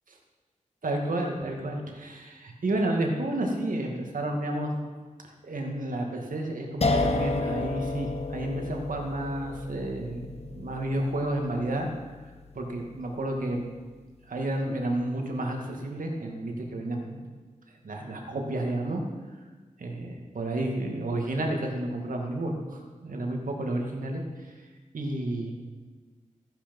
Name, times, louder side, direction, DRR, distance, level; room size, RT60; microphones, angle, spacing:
voice 1, 0.8-4.7 5.4-11.9 12.5-13.7 14.3-17.3 17.8-19.0 19.8-24.5 24.9-25.5, right 1 dB, 80° right, 1 dB, 2.2 m, -31 dB
sound 1, 6.8-13.7, left 3 dB, 50° left, 1.1 m, -32 dB
14.5 x 10.0 x 5.4 m, 1.3 s
wide cardioid pair, 115°, 14 cm